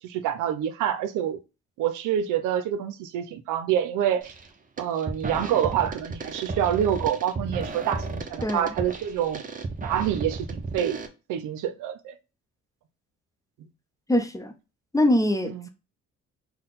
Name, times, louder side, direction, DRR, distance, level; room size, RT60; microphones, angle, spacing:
voice 1, 0.0-1.4 1.8-4.3 4.8-9.4 9.8-11.0 11.3-12.2 15.4-15.7, right 10 dB, 85° right, 0.6 m, -27 dB
sound 1, 4.2-4.5 4.8-11.1, right 3 dB, 25° right, 0.8 m, -34 dB
voice 2, 8.4-8.7 14.1-14.5 14.9-15.7, left 1 dB, 10° left, 0.7 m, -23 dB
3.9 x 2.2 x 3.9 m
cardioid pair, 90°, 30 cm